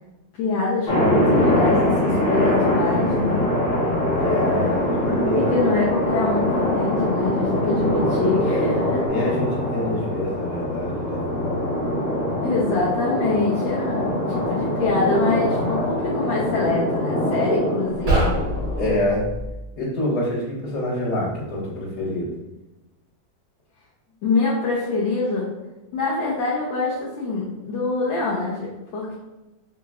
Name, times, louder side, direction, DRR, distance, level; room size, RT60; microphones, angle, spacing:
voice 1, 0.4-3.4 5.3-9.0 12.4-18.3 24.2-25.5 25.9-29.2, left 3 dB, 75° left, -8 dB, 1.6 m, -25 dB
sound 1, 0.8-19.0, left 1 dB, 30° left, 1.0 m, -23 dB
Keyboard (musical), 3.7-9.1, right 1 dB, 65° right, 1.5 m, -35 dB
voice 2, 4.2-5.5 9.1-11.2 18.8-19.2 19.8-22.3, left 1 dB, 55° left, -8 dB, 2.0 m, -26 dB
sound 2, 17.9-19.5, right 1 dB, 45° right, 2.0 m, -24 dB
5.7 x 2.9 x 2.4 m, 1.0 s
omnidirectional pair, 2.1 m